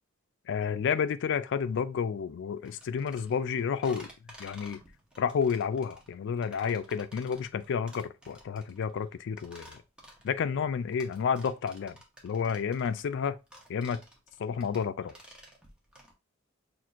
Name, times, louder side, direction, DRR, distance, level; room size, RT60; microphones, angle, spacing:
voice 1, 0.5-4.1 4.4-4.8 5.2-9.8 10.2-12.0 12.2-13.4 13.7-14.0 14.4-15.1, left 6 dB, 60° left, 0.3 m, -30 dB
sound 1, 2.6-16.1, equal, 5° right, 0.9 m, -53 dB
5.9 x 2.5 x 2.4 m
head